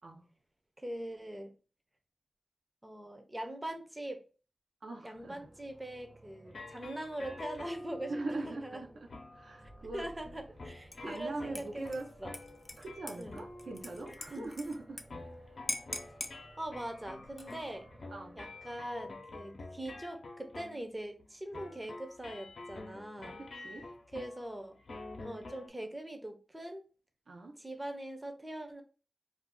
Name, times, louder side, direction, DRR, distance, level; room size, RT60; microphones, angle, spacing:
voice 1, 0.8-1.5 2.8-4.2 5.0-8.2 8.5-8.8 9.9-12.3 13.2-13.4 14.3-14.5 16.6-17.9 18.4-23.4 24.1-24.8 25.2-26.8 27.6-28.8, right 1 dB, 15° right, 5 dB, 0.5 m, -42 dB
voice 2, 4.8-5.5 8.1-10.1 11.0-12.1 12.8-15.0 18.1-18.4 23.3-23.9 27.3-27.6, right 2 dB, 90° right, 3 dB, 0.6 m, -42 dB
sound 1, 5.1-19.1, right 2 dB, 50° right, 0.8 m, -58 dB
sound 2, 6.4-14.8 15.1-25.7, left 2 dB, 90° left, 0.6 m, -48 dB
Dishes pots and pans / Liquid, 10.9-11.2 11.5-15.0 15.3-15.4 15.7-16.4 17.2-17.7, left 2 dB, 40° left, 0.4 m, -42 dB
2.5 x 2.3 x 3.5 m, 0.36 s
wide cardioid pair, 115°, 0 cm